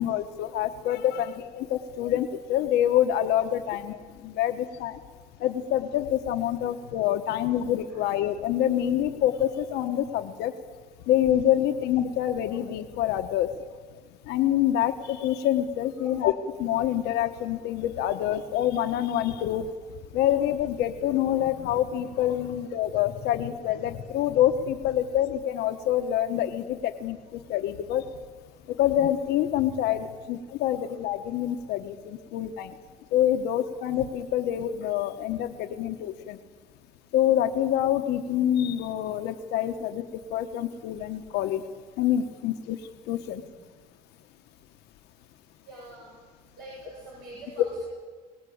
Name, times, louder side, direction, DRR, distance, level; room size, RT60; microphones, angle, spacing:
voice 1, 0.0-4.0 4.2-5.0 5.4-10.5 11.1-13.5 14.3-16.3 16.6-19.6 20.1-27.2 27.5-28.0 28.8-32.7 33.1-36.4 37.1-40.0 40.3-41.6 42.0-42.8 43.1-43.4, left 11 dB, 90° left, 6 dB, 1.1 m, -26 dB
voice 2, 45.6-46.1 46.6-47.8, right 2 dB, 65° right, -4 dB, 7.3 m, -46 dB
23.0 x 18.5 x 8.6 m, 1.5 s
cardioid pair, 110°, 17 cm